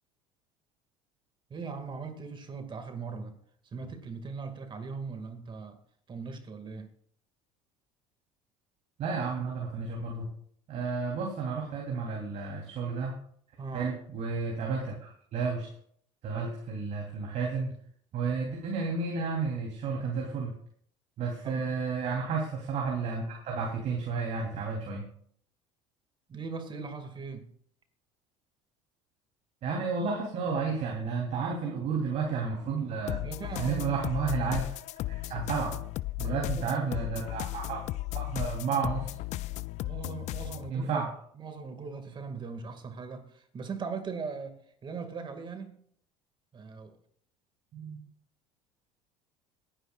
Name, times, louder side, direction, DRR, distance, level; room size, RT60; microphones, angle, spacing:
voice 1, 1.5-3.4 3.7-5.8 6.1-6.9 13.6-13.9 21.4-21.7 26.3-27.5 33.2-34.0 36.2-36.9 39.8-40.9 41.4-45.7 46.5-47.0, right 5 dB, 35° right, 2.1 m, -39 dB
voice 2, 9.0-10.3 10.7-13.1 13.7-15.7 16.2-17.7 18.1-20.5 21.2-25.0 29.6-33.3 33.6-34.7 35.1-35.8 36.2-37.8 38.1-39.1 40.7-41.1 47.7-48.0, right 5 dB, 55° right, 3.3 m, -32 dB
sound 1, 33.1-40.7, left 17 dB, 55° left, 0.4 m, -35 dB
20.0 x 10.5 x 2.4 m
supercardioid pair, 85°, 14 cm